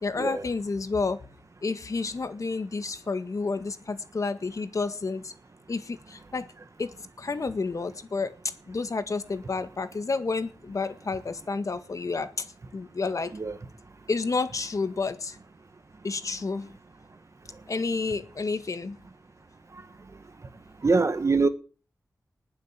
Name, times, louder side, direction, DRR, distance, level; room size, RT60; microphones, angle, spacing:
voice 1, 0.0-1.2 1.6-5.3 5.7-6.5 6.8-8.4 8.7-13.3 14.1-15.4 16.0-16.7 17.7-19.0, left 4 dB, 65° left, 1.7 m, -30 dB
voice 2, 20.8-21.5, right 3 dB, 55° right, 2.0 m, -23 dB
20.0 x 7.6 x 7.5 m
wide cardioid pair, 75°, 6 cm